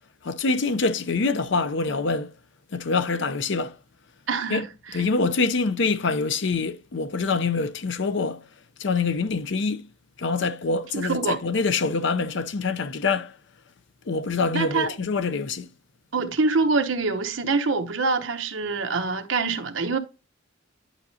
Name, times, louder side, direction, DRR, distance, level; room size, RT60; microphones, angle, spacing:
voice 1, 0.2-2.3 2.7-3.8 4.5-4.6 4.9-8.4 8.8-9.9 10.2-13.3 14.1-15.7, left 4 dB, 60° left, 0.6 m, -25 dB
voice 2, 4.3-5.0 10.9-11.4 14.5-14.9 16.1-20.0, right 4 dB, 70° right, 0.9 m, -25 dB
11.0 x 5.2 x 2.7 m
head